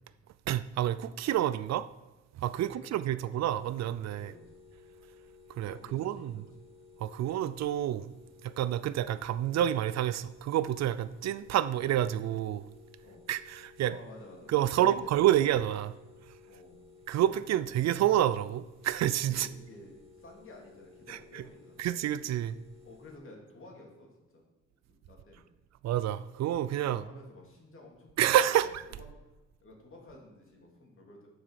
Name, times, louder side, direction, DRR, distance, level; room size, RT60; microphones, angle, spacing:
voice 1, 0.5-1.9 2.4-4.3 5.6-6.3 7.0-8.1 8.4-12.6 13.3-14.0 14.5-15.9 17.1-19.5 21.1-21.4 21.8-22.5 25.8-27.0 28.2-28.8, right 12 dB, 60° right, 0.5 m, -28 dB
sound 1, 3.3-23.2, left 4 dB, 20° right, 3.0 m, -56 dB
voice 2, 4.2-4.5 5.6-6.3 13.0-13.3 13.8-15.5 16.4-16.9 19.3-21.9 22.8-24.1 24.3-24.4 24.9-25.4 26.8-28.6 29.0-29.1 29.6-31.3, left 2 dB, 45° left, 2.9 m, -52 dB
7.4 x 6.1 x 6.5 m
cardioid pair, 90°, 30 cm